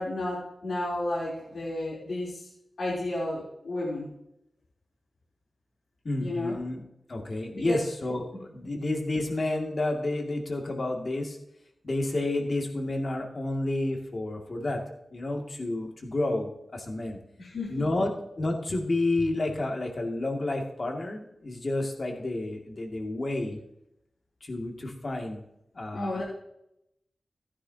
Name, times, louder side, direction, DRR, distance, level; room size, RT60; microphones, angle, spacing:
voice 1, 0.0-2.5 2.8-4.1 6.2-6.6 7.5-7.8 17.4-17.9 25.9-26.2, left 2 dB, 75° left, -6 dB, 3.3 m, -32 dB
voice 2, 6.0-6.8 7.1-11.4 11.8-14.8 15.1-17.2 17.7-18.1 18.4-23.6 24.4-25.4 25.7-26.2, left 2 dB, 45° left, 2 dB, 2.3 m, -30 dB
15.0 x 9.9 x 2.8 m, 0.80 s
wide cardioid pair, 90°, 0 cm